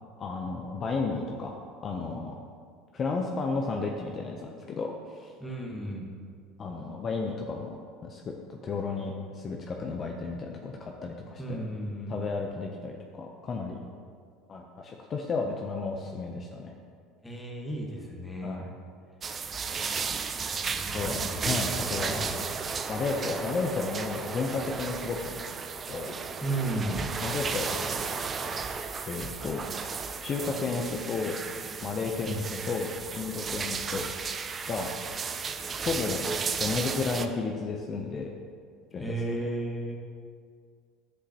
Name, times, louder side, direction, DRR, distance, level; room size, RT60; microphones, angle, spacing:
voice 1, 0.2-1.5 1.8-2.4 2.9-5.3 6.6-7.8 8.0-11.6 12.1-13.8 14.5-16.7 18.4-18.7 20.9-22.3 22.9-25.5 25.9-26.2 27.2-28.0 29.1-29.6 30.2-31.4 31.8-34.0 34.7-34.9 35.7-36.2 36.6-38.3 38.9-39.2, left 4 dB, 35° left, 1 dB, 0.6 m, -33 dB
voice 2, 5.4-6.1 11.4-12.2 17.2-18.6 20.5-21.4 22.0-22.4 26.4-27.0 32.2-32.5 39.0-40.0, right 1 dB, 5° left, -1 dB, 1.3 m, -34 dB
sound 1, 19.2-37.3, right 5 dB, 30° right, 0.4 m, -34 dB
10.0 x 7.6 x 2.9 m, 2.1 s
supercardioid pair, 125°, 0 cm